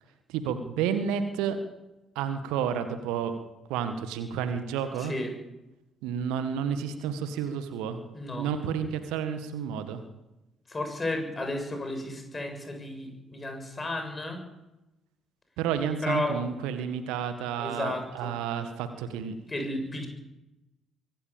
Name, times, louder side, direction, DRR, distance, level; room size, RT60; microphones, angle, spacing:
voice 1, 0.3-1.6 2.1-3.3 3.7-5.1 6.0-8.0 8.4-10.0 15.6-19.4, right 8 dB, 65° right, 9 dB, 1.6 m, -31 dB
voice 2, 5.0-5.3 8.1-8.5 10.7-14.4 16.0-16.4 17.6-18.3 19.5-20.1, left 2 dB, 25° left, 5 dB, 6.8 m, -33 dB
24.0 x 15.5 x 7.4 m, 0.97 s
figure-of-eight pair, 45°, 0 cm